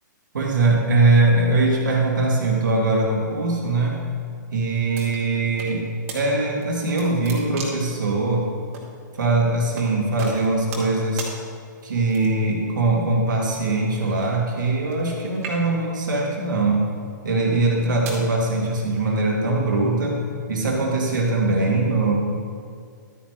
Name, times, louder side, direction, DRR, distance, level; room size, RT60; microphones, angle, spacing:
voice 1, 0.3-4.0 4.5-5.9 6.1-8.5 9.1-11.3 11.8-16.9 17.2-20.2 20.5-22.1, right 2 dB, 70° right, -1 dB, 2.3 m, -21 dB
sound 1, 4.9-5.7 6.1-6.2 6.6-7.9 8.7-8.9 9.8-9.9 10.2-10.9 11.2-11.3 12.1-12.5 13.5-15.1 15.3-15.9 16.6-16.9 17.6-18.3, right 4 dB, 45° right, 2.3 m, -36 dB
12.5 x 9.0 x 3.2 m, 2.2 s
hypercardioid pair, 130°, 11 cm